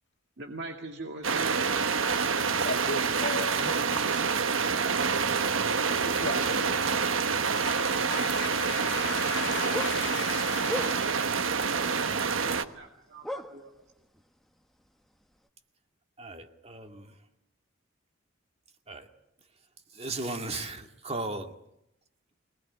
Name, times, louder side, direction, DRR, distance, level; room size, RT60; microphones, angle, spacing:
voice 1, 0.4-1.6 12.4-13.7, right 2 dB, 60° right, 2.2 m, -41 dB
sound 1, 1.2-12.6, right 5 dB, 80° right, 1.3 m, -27 dB
voice 2, 2.6-3.6 3.9-4.4 6.0-7.0 7.6-11.6, left 4 dB, 60° left, 2.0 m, -38 dB
voice 3, 3.6-4.4 6.3-6.6 16.2-17.2 18.9-19.1 19.9-21.5, right 2 dB, 30° right, 2.1 m, -38 dB
sound 2, 9.7-11.3 12.1-12.5 12.8-12.9 13.2-14.2 14.5-14.6 15.1-15.2, equal, ahead, 1.2 m, -37 dB
25.5 x 19.5 x 9.8 m
head